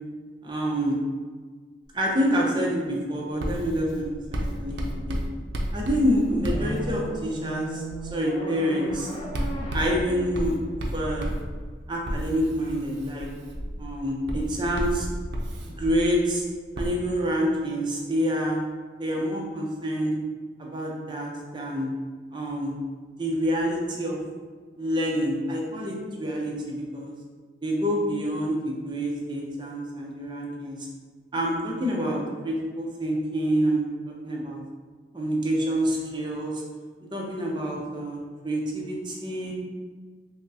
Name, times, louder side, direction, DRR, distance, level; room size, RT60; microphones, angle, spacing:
voice 1, 0.4-1.0 1.9-5.2 5.7-7.8 8.1-9.1 9.7-10.5 10.9-11.3 11.9-13.3 13.8-15.1 15.6-16.4 16.8-18.7 19.0-20.1 20.6-21.9 22.3-22.8 23.2-24.2 24.8-27.1 27.6-30.9 31.3-34.6 35.1-36.6 37.1-38.2 38.4-39.5, equal, 25° right, -2 dB, 0.5 m, -27 dB
Writing, 3.4-7.3 7.9-8.2 8.9-16.3 16.8-16.9, equal, 70° right, 0.5 m, -32 dB
sound 1, 6.5-11.6, equal, 25° left, 0.6 m, -37 dB
5.7 x 2.0 x 2.7 m, 1.5 s
head